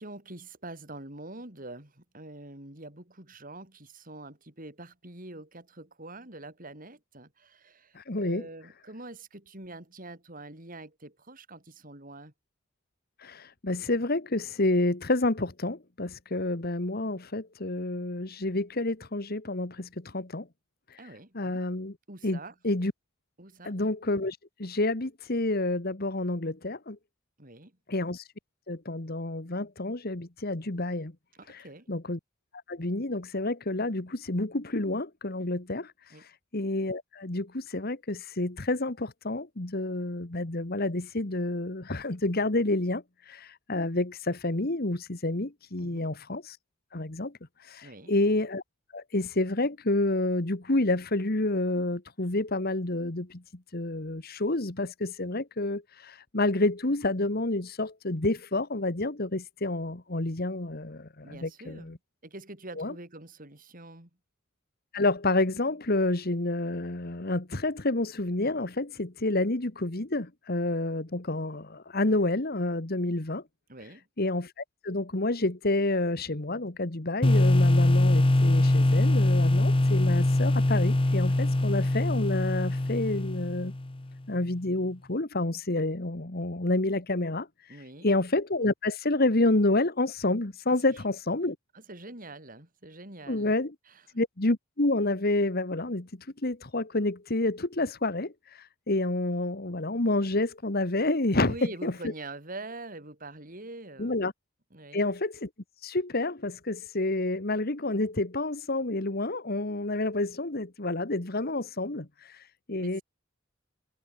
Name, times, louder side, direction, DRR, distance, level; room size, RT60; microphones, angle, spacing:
voice 1, 0.0-12.3 21.0-21.7 22.1-22.5 23.4-23.8 27.4-27.7 31.4-31.9 36.1-36.3 45.8-46.1 47.8-48.1 61.2-61.9 62.2-64.1 73.7-74.1 87.7-88.1 90.9-91.0 91.7-93.6 93.9-94.1 101.4-104.2 104.7-105.1 112.8-113.0, right 2 dB, 45° right, 5.7 m, -45 dB
voice 2, 7.9-8.5 13.2-20.5 21.3-21.9 22.2-22.4 22.6-22.9 23.6-27.0 27.9-28.2 28.7-31.1 31.5-31.6 31.9-32.2 32.7-35.9 36.5-46.6 46.9-47.3 47.7-48.6 48.9-53.4 53.7-62.0 62.8-62.9 64.9-73.4 74.2-83.7 84.3-87.5 88.0-91.5 93.3-93.7 94.1-96.1 96.4-98.3 98.9-102.1 104.0-104.3 104.9-105.5 105.8-112.1 112.7-113.0, left 2 dB, 50° left, 1.7 m, -29 dB
sound 1, 77.2-84.0, left 1 dB, 25° left, 0.7 m, -23 dB
head